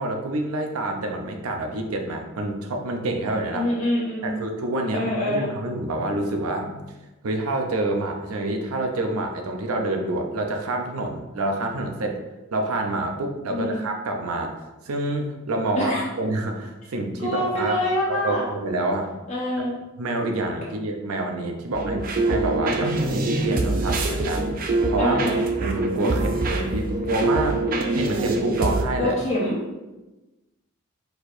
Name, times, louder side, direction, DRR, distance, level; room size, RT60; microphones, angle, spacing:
voice 1, 0.0-3.6 4.2-6.9 7.2-12.2 12.5-14.6 14.8-17.8 18.1-19.1 19.6-19.7 20.0-24.5 24.9-27.6 27.9-29.1, right 2 dB, 90° right, 3 dB, 0.6 m, -27 dB
voice 2, 3.5-4.4 4.9-5.5 13.5-13.8 15.7-16.0 17.2-18.5 19.3-19.7 25.0-25.4 29.0-29.6, left 1 dB, 35° left, -8 dB, 1.0 m, -25 dB
sound 1, 21.7-28.8, right 2 dB, 40° right, 0.5 m, -24 dB
4.5 x 4.3 x 2.6 m, 1.1 s
head